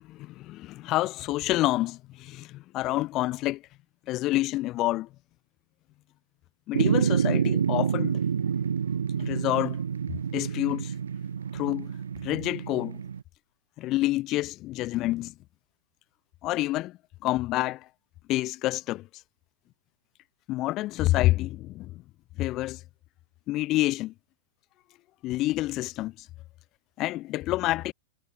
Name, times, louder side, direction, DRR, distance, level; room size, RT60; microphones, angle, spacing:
voice 1, 0.0-3.6 4.1-5.1 6.7-8.2 9.2-9.8 10.3-10.9 11.5-11.9 12.2-13.0 13.8-15.3 16.4-17.9 18.3-19.1 20.5-22.0 22.4-22.8 23.5-24.1 25.2-26.3 27.0-27.9, left 17 dB, 35° left, 1.0 m, -28 dB
sound 1, 6.7-13.2, right 7 dB, 90° right, 1.5 m, -28 dB
hypercardioid pair, 130°, 0 cm